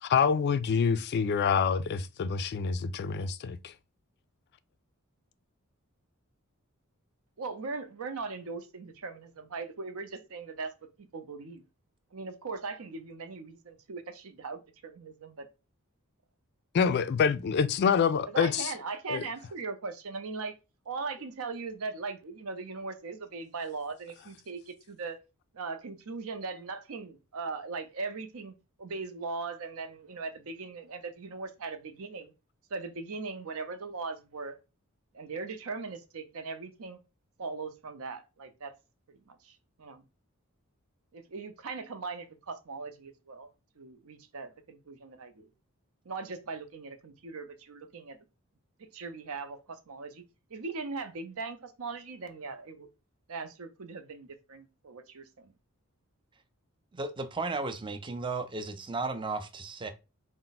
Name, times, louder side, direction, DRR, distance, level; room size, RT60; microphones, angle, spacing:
voice 1, 0.0-3.7 16.7-18.7 19.1-19.3, left 6 dB, 50° left, 0.3 m, -26 dB
voice 2, 7.4-11.6 12.1-15.5 18.2-20.5 20.9-25.2 25.5-32.3 32.7-34.6 35.1-37.0 37.4-38.7 39.1-40.0 41.1-43.5 43.8-45.5 46.1-48.2 48.8-50.2 50.5-52.9 53.3-55.5, right 4 dB, 75° right, 0.6 m, -39 dB
voice 3, 56.9-59.9, right 3 dB, 20° right, 0.4 m, -34 dB
4.4 x 2.1 x 3.9 m
head